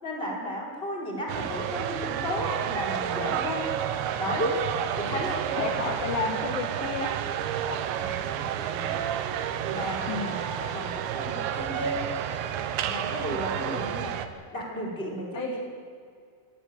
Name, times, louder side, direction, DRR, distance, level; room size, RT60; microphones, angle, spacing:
voice 1, 0.0-3.7 4.2-4.6 5.0-6.0 8.0-9.0 9.7-12.1 12.8-14.1 14.5-15.6, equal, 10° left, -3 dB, 4.6 m, -33 dB
sound 1, 1.3-14.3, right 10 dB, 75° right, 3.2 m, -30 dB
voice 2, 5.6-7.1 7.7-7.8 10.1-10.3 15.3-15.6, left 6 dB, 60° left, 2 dB, 2.7 m, -31 dB
26.5 x 10.5 x 9.7 m, 2.3 s
omnidirectional pair, 5.5 m